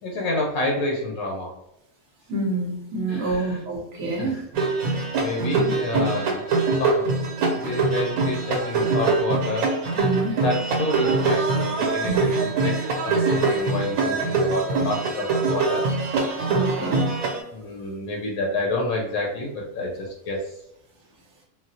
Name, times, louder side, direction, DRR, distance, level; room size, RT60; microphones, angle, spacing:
voice 1, 0.0-1.5 3.1-3.7 4.2-4.4 4.8-6.4 6.8-7.2 7.4-9.7 10.4-12.8 13.0-15.8 17.5-20.5, left 2 dB, 80° left, 0 dB, 1.1 m, -29 dB
voice 2, 2.3-4.3 10.0-10.3 12.0-12.3 16.5-17.1, right 3 dB, 60° right, -1 dB, 1.0 m, -27 dB
sound 1, 4.5-17.4, right 3 dB, 85° right, 1.2 m, -23 dB
4.1 x 2.0 x 2.6 m, 0.85 s
omnidirectional pair, 1.5 m